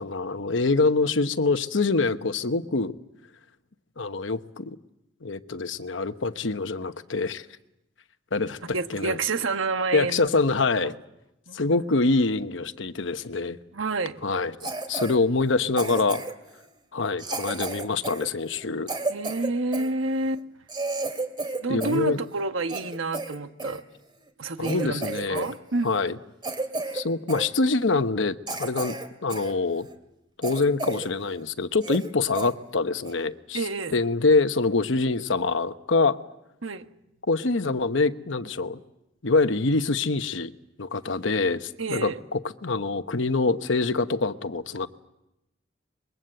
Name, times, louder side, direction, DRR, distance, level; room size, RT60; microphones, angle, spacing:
voice 1, 0.0-2.9 4.0-4.8 5.2-7.5 8.3-8.6 8.9-9.2 9.9-10.9 11.5-13.6 14.2-16.2 16.9-18.9 21.7-22.2 24.6-25.5 25.8-26.2 26.9-28.9 29.2-29.9 30.4-33.6 33.9-36.2 37.3-38.8 39.2-40.5 40.8-44.9, left 3 dB, 70° left, 1.0 m, -25 dB
voice 2, 8.6-10.3 10.8-10.9 11.5-11.6 11.9-12.0 13.7-14.2 19.1-20.4 21.6-23.8 24.4-26.1 33.5-33.9 36.6-36.9 41.8-42.2, right 3 dB, 90° right, 1.3 m, -29 dB
Cough, 14.6-15.2 15.8-16.5 17.2-19.9 20.4-20.5 20.7-22.1 22.4-23.8 24.3-24.4 24.6-25.6 25.8-26.0 26.4-27.0 27.3-27.5 28.0-28.1 28.5-29.5 29.9-30.0 30.4-31.1 31.4-31.5 31.8-32.1 32.4-32.5 33.0-33.3, right 2 dB, 25° right, 2.3 m, -32 dB
25.5 x 22.0 x 7.9 m
head